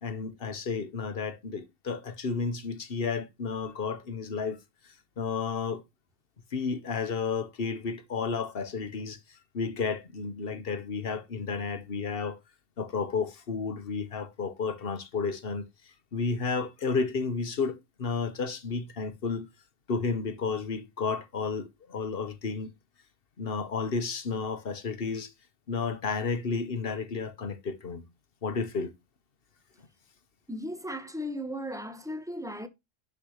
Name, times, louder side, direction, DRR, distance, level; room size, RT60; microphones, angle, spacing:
voice 1, 0.0-4.6 4.8-5.8 6.5-12.4 12.8-19.5 19.9-22.7 23.4-25.3 25.7-28.1 28.4-28.9, left 5 dB, 55° left, 1.3 m, -32 dB
voice 2, 30.5-32.7, equal, 5° right, 1.1 m, -36 dB
10.5 x 6.6 x 3.1 m
omnidirectional pair, 1.2 m